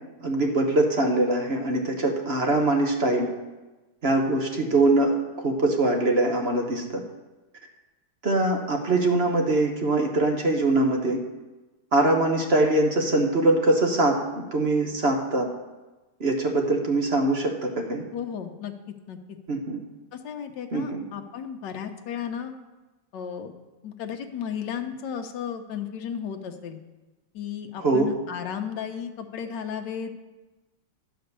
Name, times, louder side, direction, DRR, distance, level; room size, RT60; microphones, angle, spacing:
voice 1, 0.2-3.3 4.0-7.0 8.2-11.2 11.9-15.5 16.2-18.0 19.5-19.8 20.7-21.0 27.8-28.1, right 2 dB, 40° right, 2 dB, 1.2 m, -23 dB
voice 2, 18.1-18.7 19.1-19.2 20.1-22.5 23.1-23.5 23.8-26.8 27.3-30.2, left 8 dB, 75° left, 5 dB, 1.5 m, -34 dB
11.0 x 5.2 x 6.7 m, 1.1 s
omnidirectional pair, 1.9 m